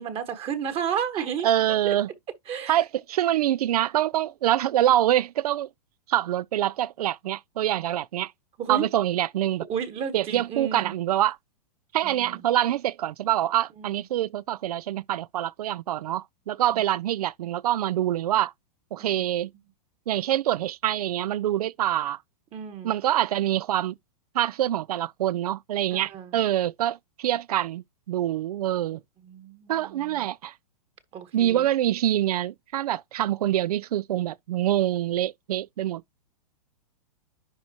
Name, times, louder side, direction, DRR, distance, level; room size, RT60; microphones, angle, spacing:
voice 1, 0.0-1.5 1.8-2.0 2.5-2.8 8.6-8.8 9.7-10.9 12.0-12.4 13.8-14.0 19.0-19.2 22.5-22.9 25.9-26.4 29.2-30.3 31.1-31.6, right 8 dB, 30° right, 1.3 m, -32 dB
voice 2, 1.4-2.1 2.7-5.7 6.1-8.3 8.7-9.6 10.1-11.4 11.9-18.5 18.9-19.5 20.1-22.2 22.8-23.9 24.3-29.0 29.7-30.5 31.3-36.0, right 12 dB, 75° right, 0.4 m, -25 dB
10.5 x 3.6 x 2.8 m
hypercardioid pair, 120°, 20 cm